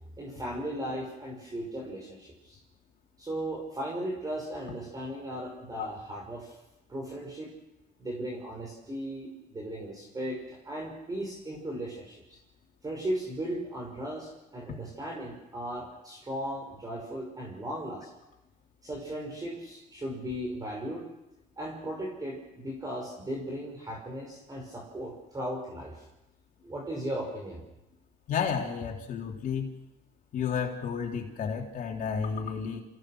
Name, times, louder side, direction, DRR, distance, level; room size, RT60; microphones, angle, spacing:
voice 1, 0.2-2.6 3.2-6.6 6.9-7.5 8.0-12.4 12.8-18.1 18.8-21.1 21.6-26.0 26.6-27.6, right 1 dB, 20° right, 0 dB, 5.6 m, -37 dB
voice 2, 28.3-29.7 30.3-32.8, left 6 dB, 55° left, 0 dB, 3.7 m, -31 dB
28.5 x 17.0 x 6.4 m, 0.95 s
cardioid pair, 110°, 17 cm